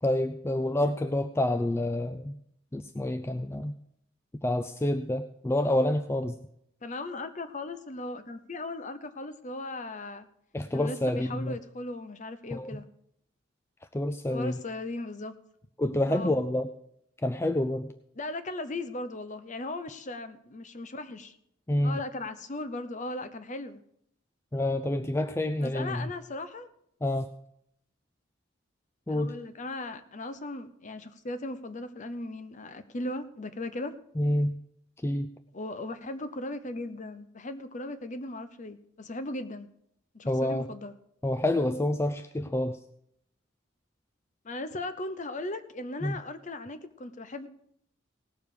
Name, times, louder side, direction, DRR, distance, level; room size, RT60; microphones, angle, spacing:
voice 1, 0.0-2.4 2.7-3.7 4.4-6.4 10.5-11.5 12.5-12.7 13.9-14.6 15.8-16.7 17.2-17.9 21.7-22.0 24.5-26.1 27.0-27.3 29.1-29.4 34.2-34.5 35.0-35.3 40.3-40.7 41.2-42.8 46.0-46.2, left 1 dB, 15° left, 9 dB, 0.4 m, -28 dB
voice 2, 6.8-10.3 10.7-12.9 14.3-15.3 16.1-16.4 18.2-21.4 21.8-23.8 25.6-26.7 29.1-34.0 35.5-39.7 40.1-40.9 44.4-47.5, left 2 dB, 40° left, 11 dB, 0.8 m, -37 dB
18.0 x 7.0 x 4.9 m, 0.73 s
head